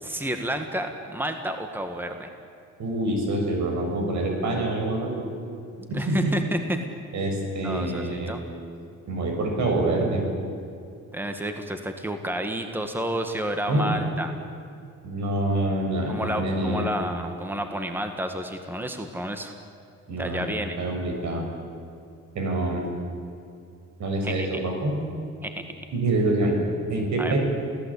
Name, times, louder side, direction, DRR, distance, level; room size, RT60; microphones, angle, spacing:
voice 1, 0.0-2.3 5.9-6.8 7.6-8.4 11.1-14.3 16.1-19.5 20.1-20.8 24.2-24.5 25.4-25.6 27.2-27.4, right 1 dB, 5° right, 6 dB, 1.9 m, -30 dB
voice 2, 2.8-5.2 5.9-6.3 7.1-8.4 9.1-10.2 13.7-14.0 15.0-16.9 20.1-20.5 20.8-21.4 22.3-22.8 24.0-24.9 25.9-26.5 26.9-27.4, right 2 dB, 70° right, 2 dB, 6.7 m, -26 dB
28.0 x 17.5 x 8.6 m, 2.5 s
cardioid pair, 90°, 30 cm